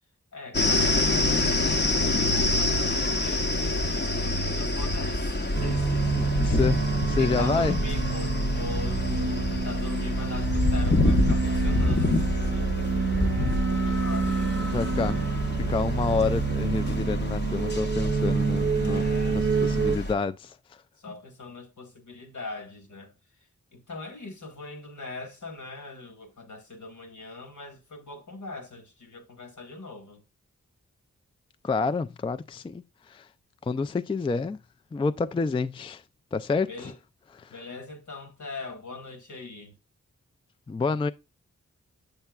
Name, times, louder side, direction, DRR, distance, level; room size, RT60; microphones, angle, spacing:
voice 1, 0.3-6.7 7.2-14.4 18.7-19.5 21.0-23.1 23.7-30.2 36.6-37.0 37.5-39.8, left 3 dB, 70° left, 1.3 m, -41 dB
sound 1, 0.5-20.1, left 1 dB, 35° left, 0.7 m, -27 dB
sound 2, 5.5-20.0, right 4 dB, 40° right, 0.7 m, -28 dB
voice 2, 6.2-7.8 14.7-15.2 15.6-20.6 31.6-33.3 33.6-34.6 34.9-36.0 36.3-36.9 37.3-37.5 40.7-41.1, left 4 dB, 20° left, 0.3 m, -29 dB
7.0 x 6.5 x 2.3 m
cardioid pair, 45°, 31 cm